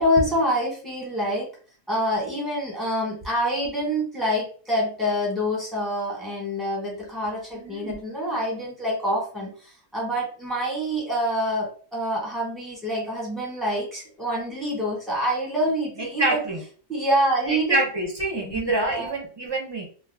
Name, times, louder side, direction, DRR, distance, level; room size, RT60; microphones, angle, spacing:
voice 1, 0.0-1.5 1.9-16.4 16.9-17.8 18.5-19.1, equal, ahead, -3 dB, 1.1 m, -26 dB
voice 2, 7.5-7.9 16.0-16.6 17.5-19.8, right 2 dB, 25° right, -1 dB, 0.6 m, -26 dB
2.4 x 2.3 x 3.3 m, 0.42 s
omnidirectional pair, 1.5 m